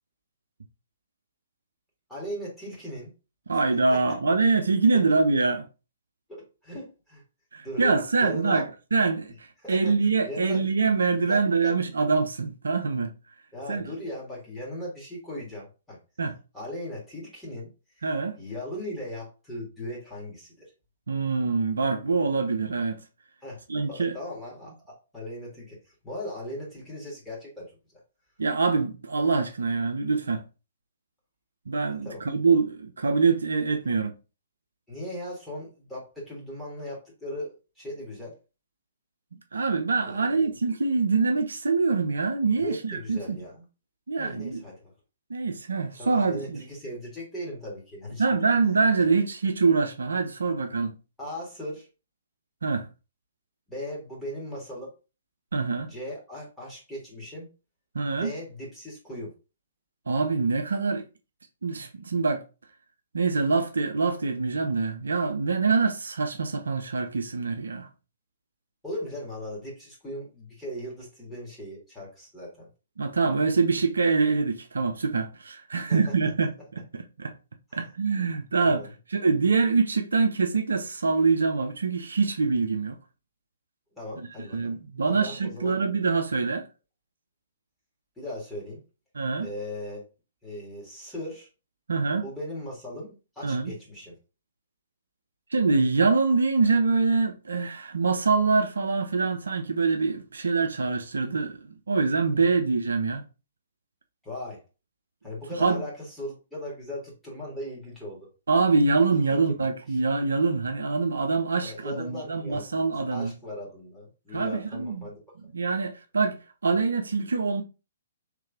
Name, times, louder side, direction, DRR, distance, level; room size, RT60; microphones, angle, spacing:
voice 1, 2.1-3.1 3.9-4.0 6.3-7.2 7.6-7.9 8.2-8.6 9.6-9.9 10.2-10.7 11.2-11.8 13.5-16.0 16.5-17.7 18.0-18.1 18.4-20.7 23.4-23.6 23.9-24.7 25.1-25.8 26.0-27.7 32.0-32.2 33.8-34.0 34.9-38.4 40.0-40.5 42.6-43.6 44.1-44.9 45.9-48.4 51.2-51.9 53.7-54.9 55.8-57.5 58.1-59.3 68.8-72.7 75.9-76.0 77.7-77.9 78.6-78.9 83.9-84.7 85.0-85.8 88.2-88.8 89.4-90.0 90.4-91.5 92.2-94.2 102.3-102.5 104.2-104.6 105.2-108.3 109.3-109.6 109.9-110.0 111.6-115.2, left 1 dB, 5° left, 1.9 m, -38 dB
voice 2, 3.5-5.7 7.5-13.1 13.7-13.9 16.2-16.3 18.0-18.4 21.1-23.0 23.7-24.1 28.4-30.4 31.7-34.1 39.5-43.4 44.1-44.6 45.3-46.6 48.2-50.9 52.6-52.9 55.5-55.9 57.9-58.3 60.1-61.0 61.6-62.4 63.1-67.9 73.0-77.3 77.7-78.8 79.1-83.0 84.5-86.6 89.1-89.5 91.9-92.3 93.4-93.7 95.5-103.2 105.6-105.8 108.5-113.3 114.3-115.1 115.5-117.6, right 4 dB, 65° right, 0.5 m, -25 dB
3.3 x 3.2 x 3.5 m
figure-of-eight pair, 120°, 0 cm